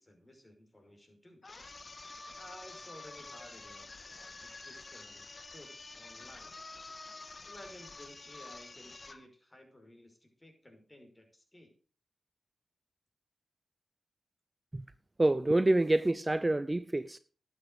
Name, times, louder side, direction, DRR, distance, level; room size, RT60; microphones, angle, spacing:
voice 1, 0.0-1.4 2.4-6.5 7.4-11.7, left 1 dB, 25° left, 5.6 m, -55 dB
sound 1, 1.4-9.3, left 3 dB, 45° left, 1.6 m, -48 dB
voice 2, 15.2-17.2, right 2 dB, 25° right, 0.6 m, -27 dB
11.5 x 8.5 x 6.5 m
cardioid pair, 40°, 0 cm